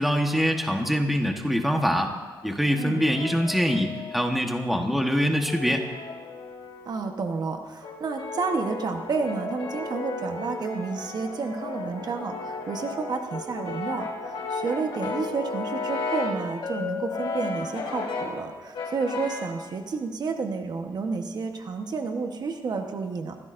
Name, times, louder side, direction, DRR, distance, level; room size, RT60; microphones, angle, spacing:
voice 1, 0.0-2.1 2.4-5.8, equal, ahead, 3 dB, 1.2 m, -24 dB
Brass instrument, 2.4-4.4 5.1-7.2 7.8-16.5 17.1-18.4 18.7-19.6, left 3 dB, 85° left, 2.7 m, -35 dB
voice 2, 6.9-23.4, right 4 dB, 50° right, 4 dB, 1.1 m, -30 dB
Bell, 16.6-18.3, left 7 dB, 50° left, 4.2 m, -35 dB
23.5 x 15.5 x 2.6 m, 1.4 s
wide cardioid pair, 140°, 9 cm